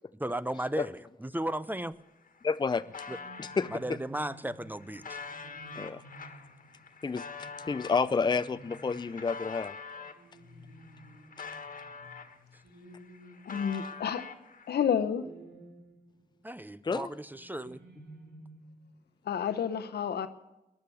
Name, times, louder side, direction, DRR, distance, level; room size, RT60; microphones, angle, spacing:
voice 1, 0.1-2.0 3.1-3.2 3.7-5.2 16.4-18.0, right 1 dB, 10° right, 0.7 m, -35 dB
sound 1, 1.9-2.0 2.3-3.8 4.4-10.2 10.7-12.6 12.9-14.7, left 5 dB, 55° left, 1.6 m, -45 dB
voice 2, 2.4-2.8 3.4-3.7 5.8-6.0 7.0-9.7 16.8-17.1, left 5 dB, 25° left, 0.5 m, -30 dB
sound 2, 2.7-14.3 15.1-16.4 17.3-18.9, right 1 dB, 90° right, 2.5 m, -54 dB
voice 3, 13.5-14.2 14.7-15.3 19.3-20.3, left 8 dB, 80° left, 0.9 m, -30 dB
19.0 x 11.0 x 7.0 m
supercardioid pair, 45°, 17 cm